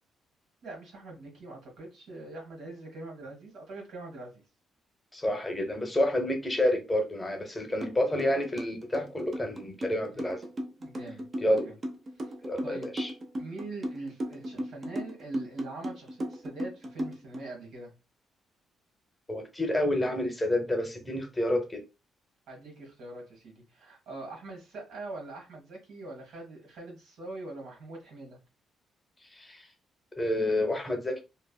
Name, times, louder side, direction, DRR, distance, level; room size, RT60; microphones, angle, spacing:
voice 1, 0.6-4.4 10.1-10.2 10.8-11.7 12.2-12.3 12.6-12.9 13.4-17.9 22.5-28.4, right 2 dB, 80° right, 1.6 m, -43 dB
voice 2, 5.1-10.4 11.4-11.7 12.4-13.1 19.3-21.8 29.3-29.7 30.2-31.2, left 1 dB, 15° left, 0.8 m, -29 dB
sound 1, 7.8-7.9 8.2-17.4, equal, 35° right, 0.7 m, -35 dB
3.2 x 2.1 x 2.3 m
cardioid pair, 90°, 0 cm